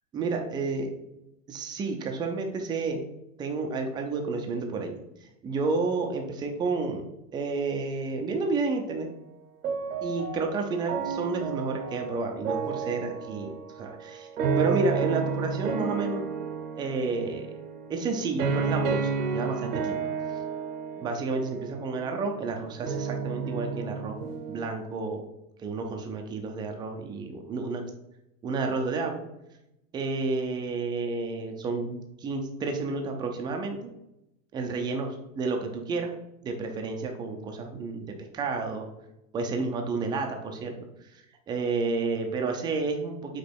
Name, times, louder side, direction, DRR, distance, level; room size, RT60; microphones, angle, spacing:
voice 1, 0.1-0.9 1.5-3.0 3.4-5.0 5.4-7.1 7.3-9.1 10.0-14.3 14.6-16.3 16.8-17.5 17.9-20.0 21.0-24.2 24.5-25.2 25.6-27.8 28.4-29.2 29.9-33.9 34.5-36.1 36.4-38.1 38.3-38.9 39.3-40.8 41.1-41.2 41.5-43.4, right 3 dB, 10° right, 3 dB, 0.4 m, -30 dB
sound 1, 9.6-24.6, right 5 dB, 90° right, 1.2 m, -32 dB
5.3 x 4.0 x 4.5 m, 0.88 s
hypercardioid pair, 135°, 43 cm